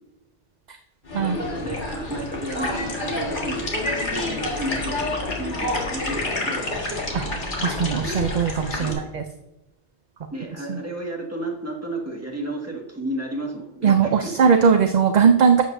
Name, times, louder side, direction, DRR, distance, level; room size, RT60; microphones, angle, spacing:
sound 1, 1.1-8.9, left 2 dB, 50° left, 1.9 m, -28 dB
voice 1, 1.2-3.7 4.3-6.7 8.8-9.0 10.3-14.3, right 1 dB, 15° right, -1 dB, 1.8 m, -32 dB
voice 2, 7.6-9.2 10.7-10.8 13.8-15.6, right 6 dB, 50° right, 6 dB, 0.6 m, -19 dB
12.0 x 7.8 x 2.6 m, 0.98 s
omnidirectional pair, 1.1 m